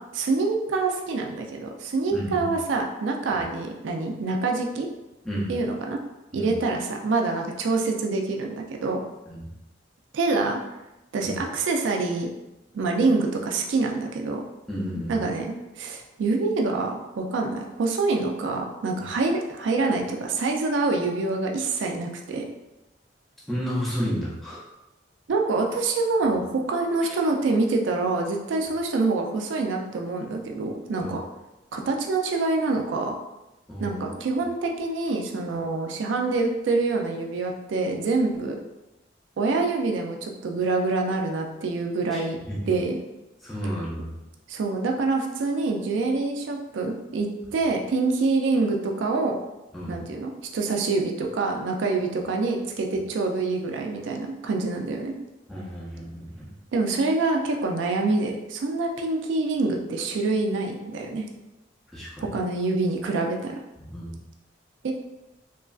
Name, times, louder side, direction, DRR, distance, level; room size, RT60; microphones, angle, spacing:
voice 1, 0.1-4.9 5.5-6.0 6.3-9.0 10.1-10.6 11.1-12.3 12.7-14.4 15.1-22.4 25.3-31.2 31.7-33.1 33.8-38.6 39.4-42.4 42.7-43.0 44.5-49.4 49.9-55.1 56.7-61.3 62.2-63.6 64.8-64.9, right 3 dB, 80° right, 2 dB, 0.4 m, -26 dB
voice 2, 2.1-2.5 5.2-5.5 6.3-6.6 9.3-9.5 11.2-11.4 14.7-15.3 23.5-24.6 31.0-31.2 33.7-34.0 42.1-42.8 43.4-44.1 49.7-50.0 55.5-56.5 61.9-62.4 63.8-64.2, equal, ahead, -7 dB, 0.5 m, -32 dB
3.0 x 2.4 x 2.3 m, 0.98 s
head